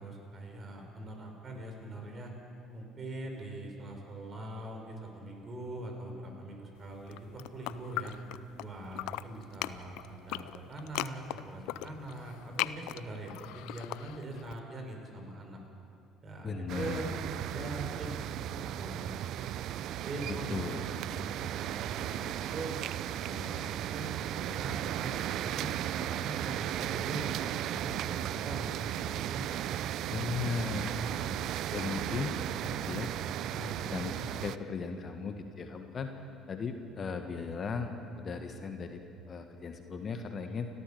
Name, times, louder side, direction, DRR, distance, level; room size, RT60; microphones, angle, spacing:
voice 1, 0.0-2.3 2.7-8.1 8.5-15.6 16.2-19.4 19.9-22.8 23.2-29.4 30.0-31.3 31.9-32.0 32.6-32.7 33.5-33.9, right 2 dB, 35° right, 2 dB, 5.0 m, -42 dB
sound 1, 7.0-8.7 8.9-14.5, left 16 dB, 65° left, 0.4 m, -38 dB
voice 2, 16.4-17.1 17.7-17.8 20.5-20.8 30.1-30.9 31.7-32.3 32.9-33.1 33.9-36.1 36.5-40.7, left 5 dB, 40° left, 6 dB, 1.7 m, -37 dB
sound 2, 16.7-34.6, right 12 dB, 60° right, 0.5 m, -35 dB
30.0 x 12.5 x 7.0 m, 2.6 s
hypercardioid pair, 60°, 0 cm